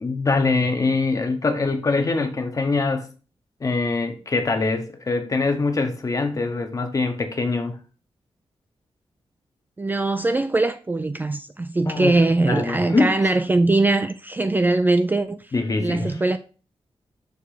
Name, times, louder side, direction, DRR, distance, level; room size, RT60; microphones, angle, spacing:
voice 1, 0.0-3.1 3.6-7.8 11.9-12.2 12.5-13.1 15.5-16.2, left 3 dB, 35° left, 1.0 m, -23 dB
voice 2, 9.8-15.5 15.8-16.4, right 2 dB, 20° right, 0.3 m, -21 dB
6.6 x 3.4 x 4.9 m
wide cardioid pair, 140°, 10 cm